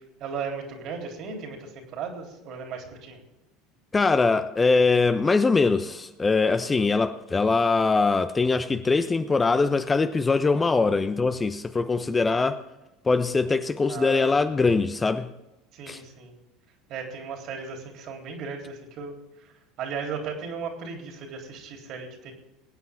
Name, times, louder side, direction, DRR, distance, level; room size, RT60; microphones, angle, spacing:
voice 1, 0.2-3.2 13.9-14.3 15.7-16.3 16.9-22.3, right 5 dB, 50° right, 3.4 m, -36 dB
voice 2, 3.9-12.6 13.0-15.3 15.9-16.0, left 4 dB, 20° left, 0.8 m, -22 dB
22.0 x 9.2 x 3.6 m
hypercardioid pair, 75°, 0 cm